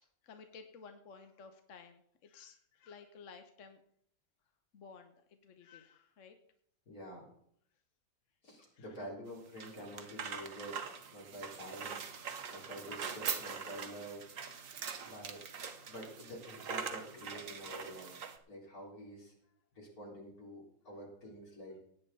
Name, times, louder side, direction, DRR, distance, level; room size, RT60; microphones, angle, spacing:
voice 1, 0.0-3.8 4.7-6.4 8.7-9.1 12.6-13.1, left 5 dB, 60° left, 6 dB, 1.3 m, -55 dB
voice 2, 6.9-7.3 8.4-10.8 11.1-12.1 12.5-14.4 15.0-18.2 18.5-19.3 19.7-21.8, equal, 90° left, -2 dB, 4.4 m, -48 dB
sound 1, 9.3-18.4, right 6 dB, 65° right, 1.5 m, -43 dB
17.0 x 9.4 x 4.1 m, 0.66 s
omnidirectional pair, 1.5 m